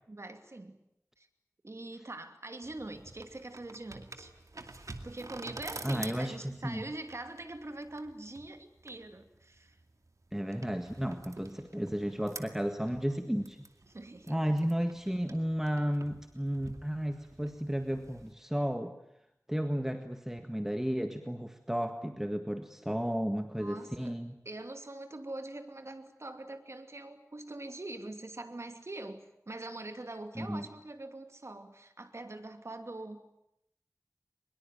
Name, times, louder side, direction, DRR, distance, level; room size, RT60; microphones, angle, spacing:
voice 1, 0.1-0.8 1.2-1.3 1.6-4.3 5.0-9.8 13.9-14.5 23.6-24.2 24.4-33.3, right 2 dB, 60° right, 7 dB, 2.7 m, -43 dB
sound 1, 2.6-18.3, right 2 dB, 75° right, 2.4 m, -49 dB
voice 2, 5.8-6.8 10.3-13.6 14.3-18.9 19.5-24.4 30.3-30.7, equal, 5° right, 7 dB, 1.7 m, -33 dB
24.0 x 22.0 x 9.3 m, 0.79 s
wide cardioid pair, 60°, 6 cm